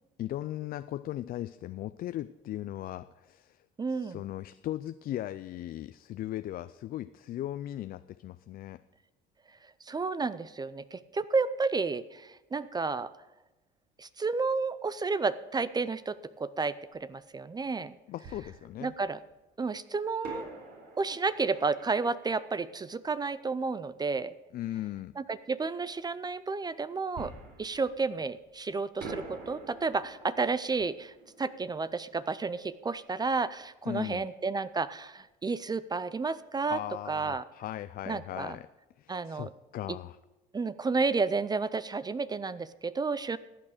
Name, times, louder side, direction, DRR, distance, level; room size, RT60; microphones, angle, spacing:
voice 1, 0.2-3.6 3.9-8.8 18.1-18.9 24.5-25.1 33.9-34.3 36.7-38.7 39.0-40.2, left 13 dB, 50° left, 13 dB, 0.4 m, -38 dB
voice 2, 3.8-4.2 9.9-13.1 14.0-17.9 18.8-19.2 19.6-20.5 21.0-24.3 25.2-27.3 27.6-36.8 37.1-37.4 38.1-38.6 39.1-39.5 40.5-43.4, right 4 dB, 20° right, 16 dB, 0.5 m, -31 dB
Fireworks, 18.2-19.3 20.2-23.7 27.1-28.6 29.0-33.5 33.8-33.9 34.4-34.6, right 3 dB, 60° right, 4.0 m, -48 dB
14.5 x 8.6 x 5.0 m, 1.0 s
supercardioid pair, 90°, 20 cm